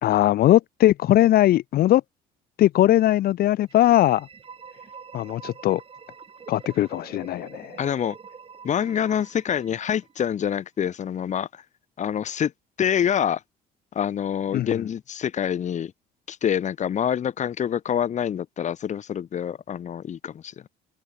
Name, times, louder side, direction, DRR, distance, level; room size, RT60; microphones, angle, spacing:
voice 1, 0.0-2.0 2.6-4.3 5.1-5.8 6.5-7.8 14.5-14.9, left 14 dB, 65° left, 0.9 m, -20 dB
sound 1, 3.6-10.4, right 6 dB, 35° right, 2.3 m, -46 dB
voice 2, 7.8-8.2 8.6-11.5 12.0-12.5 12.8-13.4 13.9-15.9 16.3-20.5, left 9 dB, 45° left, 1.6 m, -26 dB
cardioid pair, 110°, 17 cm